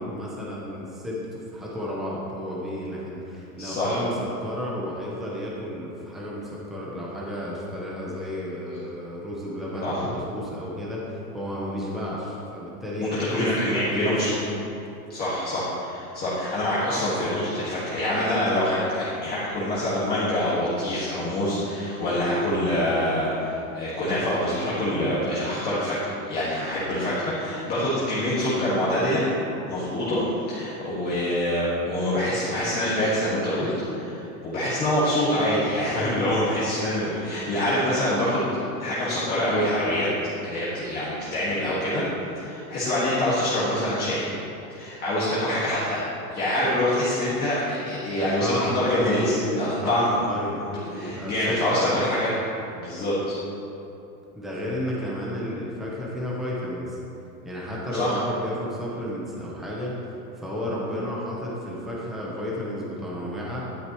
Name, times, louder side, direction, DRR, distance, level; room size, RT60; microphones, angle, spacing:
voice 1, 0.0-14.4 48.1-52.2 54.4-57.0 57.4-63.7, equal, ahead, -5 dB, 0.8 m, -32 dB
voice 2, 3.6-4.0 9.8-10.1 13.0-14.4 15.1-29.3 29.7-38.5 38.8-40.1 40.4-42.0 42.4-44.4 44.7-46.0 46.3-50.1 50.6-52.3 52.7-53.4 57.9-58.2, left 1 dB, 20° left, -10 dB, 1.8 m, -25 dB
11.5 x 10.0 x 3.1 m, 2.9 s
supercardioid pair, 160°, 44 cm